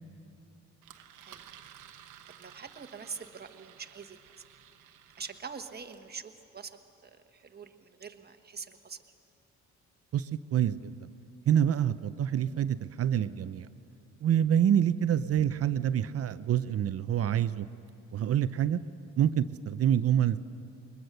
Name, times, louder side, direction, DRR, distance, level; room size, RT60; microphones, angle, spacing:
Engine, 0.8-6.1, right 10 dB, 85° right, 1.1 m, -54 dB
voice 1, 2.2-4.4 5.2-9.0, right 5 dB, 30° right, 7 dB, 1.3 m, -44 dB
voice 2, 10.1-10.9 11.5-13.7 14.2-17.7 18.1-18.8 19.2-20.4, right 9 dB, 50° right, 14 dB, 0.6 m, -27 dB
21.5 x 21.0 x 6.7 m, 2.7 s
cardioid pair, 90°, 30 cm